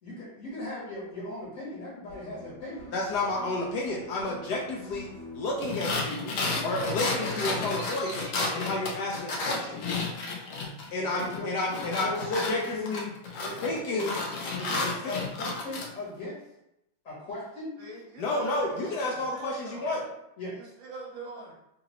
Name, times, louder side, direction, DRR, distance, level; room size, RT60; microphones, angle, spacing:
voice 1, 0.0-2.9 11.1-11.5 12.0-12.8 13.4-14.0 14.5-16.4 17.0-17.8 20.4-20.5, left 2 dB, 45° left, -7 dB, 1.3 m, -38 dB
sound 1, 2.1-5.9, equal, 40° right, 1.5 m, -46 dB
voice 2, 2.9-6.3 6.6-10.0 10.9-13.1 13.6-14.1 14.8-15.1 18.2-20.0, left 2 dB, 70° left, -2 dB, 1.0 m, -31 dB
sound 2, 5.6-10.9 11.2-15.9, left 3 dB, 85° left, 0.7 m, -32 dB
Bird vocalization bird call bird song, 7.6-11.9 12.2-12.8 13.4-15.3, right 2 dB, 15° right, 0.7 m, -49 dB
voice 3, 17.8-20.1 20.5-21.5, right 3 dB, 75° right, -3 dB, 1.6 m, -43 dB
3.8 x 2.5 x 2.9 m, 0.84 s
omnidirectional pair, 2.2 m